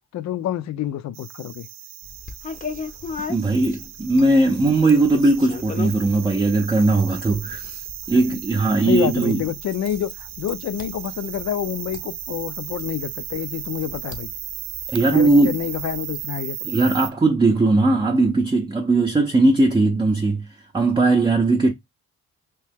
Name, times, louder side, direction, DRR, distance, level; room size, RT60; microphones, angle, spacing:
voice 1, 0.1-1.7 8.3-8.4 8.9-14.3 15.1-17.0, left 11 dB, 65° left, 0.6 m, -28 dB
sound 1, 1.1-17.1, right 11 dB, 60° right, 0.5 m, -36 dB
sound 2, 2.0-16.2, left 5 dB, 25° left, 0.7 m, -39 dB
voice 2, 3.3-9.4 14.9-15.6 16.6-20.5 20.7-21.7, right 2 dB, 15° right, 0.6 m, -19 dB
3.0 x 2.8 x 3.4 m
cardioid pair, 90°, 30 cm